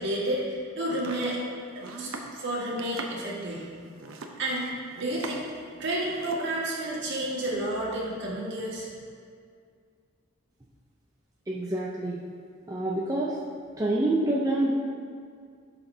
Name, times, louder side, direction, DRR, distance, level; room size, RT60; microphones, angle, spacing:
voice 1, 0.0-3.7 4.0-4.7 5.0-8.9, right 1 dB, 55° right, -5 dB, 1.7 m, -31 dB
Domestic sounds home sounds, 0.8-5.6 5.9-6.5, right 3 dB, 70° right, 0.7 m, -41 dB
voice 2, 11.5-12.2 12.7-13.4 13.8-14.7, right 1 dB, 15° right, -5 dB, 0.5 m, -27 dB
12.5 x 6.0 x 2.7 m, 2.2 s
head